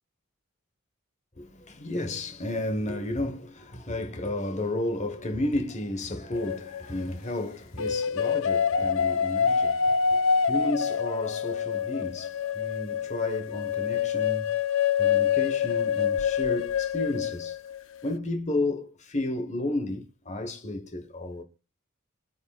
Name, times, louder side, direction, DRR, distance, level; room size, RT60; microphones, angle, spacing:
voice 1, 1.4-14.6 15.0-17.6 18.0-21.4, left 1 dB, 35° left, 1.4 m, -32 dB
sound 1, 6.3-7.1 7.8-17.8, left 7 dB, 65° left, 0.5 m, -26 dB
25.5 x 8.5 x 2.4 m
head